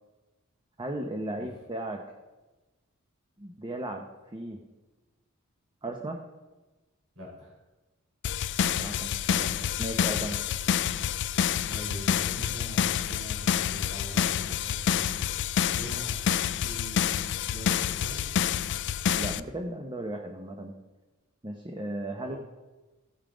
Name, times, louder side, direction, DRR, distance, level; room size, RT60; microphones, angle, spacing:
voice 1, 0.8-2.0 3.4-4.6 5.8-6.2 8.6-9.5 9.8-10.4 19.2-20.8 21.4-22.4, right 1 dB, 20° right, 3 dB, 0.8 m, -36 dB
voice 2, 7.1-7.6 11.7-16.2 16.6-18.2 22.2-22.4, equal, 85° right, -3 dB, 4.1 m, -43 dB
sound 1, 8.2-19.4, left 9 dB, 55° left, 0.3 m, -28 dB
15.0 x 5.6 x 5.0 m, 1.2 s
head